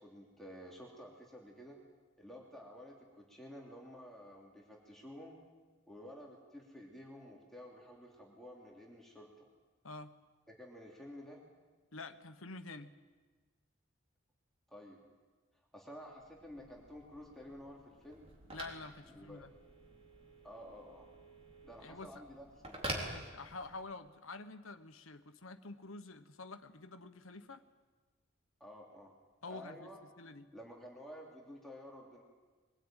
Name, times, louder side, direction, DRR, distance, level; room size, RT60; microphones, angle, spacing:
voice 1, 0.0-1.8 2.2-5.4 5.9-9.3 10.5-11.4 14.7-15.0 15.7-18.3 19.1-19.5 20.4-21.1 21.6-23.0 28.6-29.1 29.5-30.0 30.5-32.2, equal, ahead, -3 dB, 3.1 m, -52 dB
voice 2, 9.8-10.2 11.9-12.9 18.5-19.5 21.8-22.1 23.0-27.6 29.4-29.9 30.2-30.5, left 3 dB, 85° left, 8 dB, 1.3 m, -48 dB
Telephone, 16.1-24.0, right 1 dB, 30° right, 4.0 m, -47 dB
23.0 x 19.0 x 9.1 m, 1.3 s
head